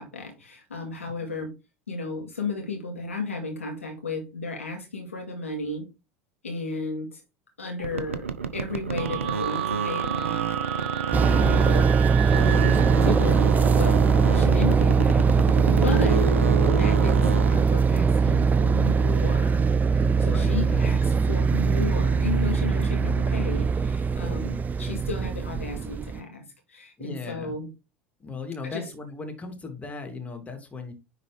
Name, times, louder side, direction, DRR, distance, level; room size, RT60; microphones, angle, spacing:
voice 1, 0.0-1.5 1.9-5.9 6.4-7.2 7.6-8.3 8.5-10.9 11.2-11.9 12.2-13.4 13.8-14.0 14.3-15.3 15.7-16.3 16.7-19.6 20.2-27.7 28.6-28.9, left 3 dB, 90° left, 2.4 m, -34 dB
sound 1, 7.8-12.0 12.3-17.7, right 5 dB, 85° right, 0.7 m, -31 dB
sound 2, 9.0-13.2 15.3-17.2, right 7 dB, 55° right, 1.4 m, -31 dB
sound 3, 11.1-26.2, right 5 dB, 25° right, 0.5 m, -21 dB
voice 2, 15.8-16.1 19.9-20.8 22.8-23.2 27.0-27.5 28.2-30.9, left 4 dB, 20° left, 2.6 m, -37 dB
10.0 x 4.0 x 3.4 m
hypercardioid pair, 75°, 7 cm